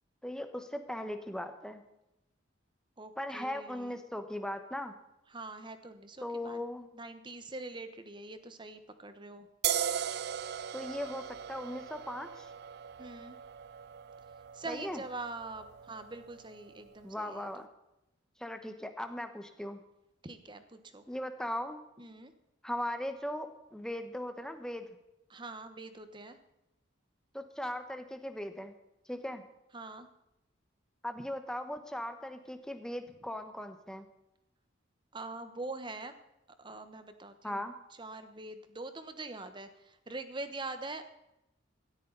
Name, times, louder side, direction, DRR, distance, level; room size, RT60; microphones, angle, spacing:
voice 1, 0.2-1.8 3.2-4.9 6.2-6.9 10.7-12.5 14.7-15.0 17.0-17.7 18.4-19.8 21.1-21.8 22.6-25.0 27.3-28.7 29.1-29.4 31.0-34.1 37.4-37.7, left 1 dB, 5° left, 7 dB, 1.2 m, -38 dB
voice 2, 3.0-4.0 5.3-6.6 6.9-9.5 13.0-13.4 14.5-17.5 20.2-21.0 22.0-22.3 25.3-26.4 29.7-30.1 35.1-36.1 36.6-37.6 38.0-41.1, right 2 dB, 25° right, 9 dB, 1.1 m, -44 dB
sound 1, 9.6-16.9, right 9 dB, 55° right, 0.5 m, -39 dB
17.0 x 13.0 x 4.0 m, 0.89 s
head